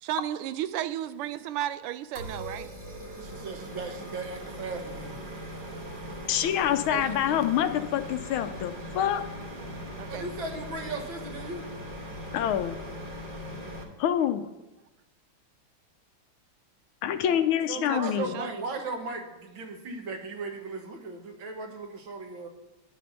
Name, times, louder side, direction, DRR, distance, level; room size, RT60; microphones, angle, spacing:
voice 1, 0.0-2.7 6.9-7.4 10.0-10.3 17.8-18.7, right 12 dB, 85° right, 13 dB, 1.5 m, -34 dB
sound 1, 2.1-13.8, equal, 30° right, 1.1 m, -40 dB
voice 2, 3.2-5.2 10.1-11.6 17.2-17.4 17.7-22.5, right 3 dB, 65° right, 3 dB, 1.9 m, -37 dB
voice 3, 6.3-9.2 12.3-12.8 14.0-14.4 17.0-18.3, left 10 dB, 80° left, 9 dB, 1.4 m, -26 dB
9.7 x 7.6 x 5.5 m, 1.0 s
omnidirectional pair, 2.4 m